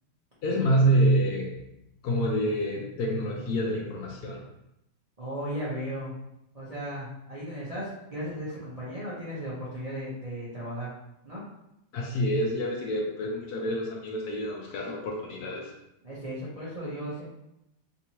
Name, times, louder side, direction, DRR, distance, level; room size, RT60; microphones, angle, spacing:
voice 1, 0.4-1.6 2.0-4.4 11.9-15.7, right 1 dB, 70° left, 0 dB, 1.1 m, -27 dB
voice 2, 5.2-6.2 6.5-10.9 11.2-11.5 16.0-17.3, equal, 45° right, -10 dB, 0.5 m, -36 dB
3.4 x 2.9 x 2.8 m, 0.85 s
omnidirectional pair, 1.9 m